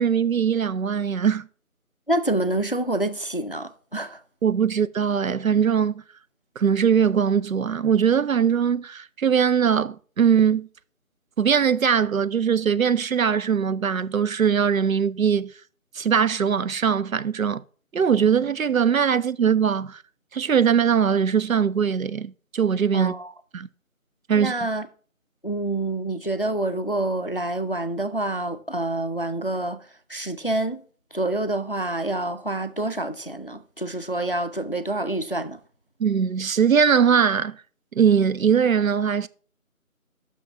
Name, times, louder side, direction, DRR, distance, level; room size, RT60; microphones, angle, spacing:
voice 1, 0.0-1.4 4.4-5.9 6.6-10.7 11.4-15.5 16.0-17.6 17.9-20.0 20.3-23.1 23.5-23.7 24.3-24.5 36.0-37.6 38.0-39.3, right 7 dB, 70° right, 0.5 m, -21 dB
voice 2, 2.1-4.2 22.9-23.3 24.4-24.9 25.4-29.8 30.1-30.8 31.1-35.6, right 1 dB, 40° left, 0.4 m, -27 dB
6.1 x 5.7 x 6.5 m
figure-of-eight pair, 165°, 43 cm